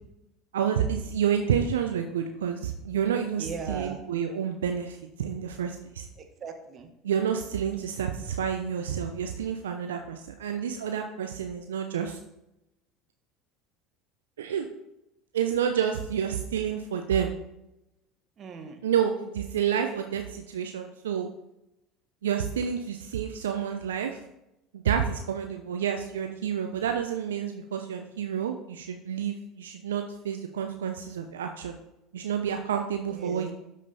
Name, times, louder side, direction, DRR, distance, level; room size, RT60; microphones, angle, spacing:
voice 1, 0.5-6.1 7.0-12.2 14.4-14.7 15.3-17.3 18.8-21.3 22.2-24.2 24.7-31.8 32.1-33.6, right 8 dB, 80° right, 5 dB, 0.6 m, -29 dB
voice 2, 3.4-4.0 6.2-6.9 18.4-18.8 33.1-33.5, right 5 dB, 40° right, 5 dB, 1.5 m, -39 dB
12.0 x 5.3 x 4.1 m, 0.90 s
figure-of-eight pair, 70°, 0 cm